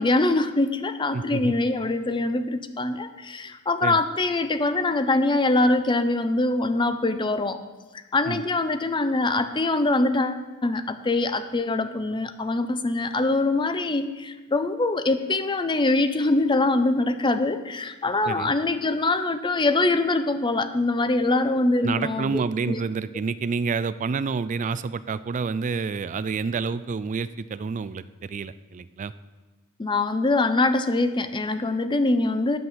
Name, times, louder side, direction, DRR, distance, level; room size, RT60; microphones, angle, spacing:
voice 1, 0.0-7.6 8.1-22.8 29.8-32.6, left 2 dB, 20° left, 10 dB, 0.5 m, -23 dB
voice 2, 1.1-1.5 3.8-4.0 8.3-8.4 18.2-18.5 21.8-29.1, right 5 dB, 35° right, 15 dB, 0.3 m, -28 dB
9.3 x 7.8 x 5.7 m, 1.2 s
head